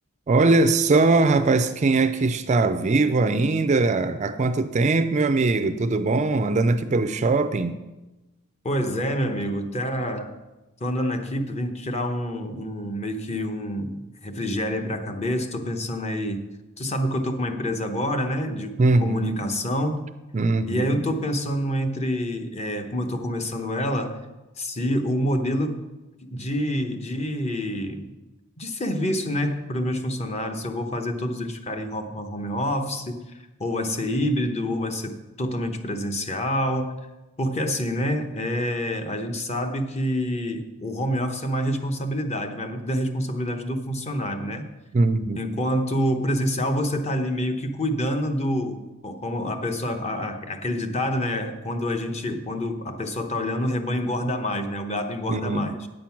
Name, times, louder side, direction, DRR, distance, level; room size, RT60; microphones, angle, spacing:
voice 1, 0.3-7.8 18.8-19.4 20.3-21.0 44.9-45.4 55.3-55.7, right 3 dB, 35° right, 11 dB, 0.4 m, -21 dB
voice 2, 8.6-10.4 10.8-16.5 16.8-20.1 20.7-24.2 24.6-25.9 26.2-28.1 28.6-33.2 33.6-36.9 37.4-44.7 45.4-55.8, equal, 30° left, 6 dB, 0.9 m, -27 dB
9.2 x 7.5 x 5.8 m, 1.1 s
head